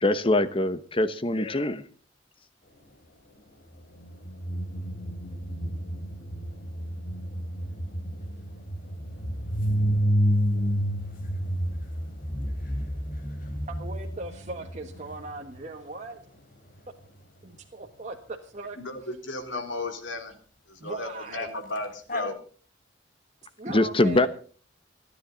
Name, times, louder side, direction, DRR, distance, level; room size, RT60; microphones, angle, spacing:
voice 1, 0.0-1.8 23.7-24.3, left 2 dB, 30° left, 1.0 m, -23 dB
sound 1, 4.0-15.6 21.8-21.9 22.1-22.3, equal, 50° left, 3.0 m, -30 dB
voice 2, 13.7-16.2 17.4-18.8 20.8-21.5 23.6-24.3, right 3 dB, 40° right, 1.4 m, -38 dB
voice 3, 18.8-20.3 20.7-22.4, left 2 dB, 90° left, 3.6 m, -34 dB
29.0 x 10.5 x 4.0 m
head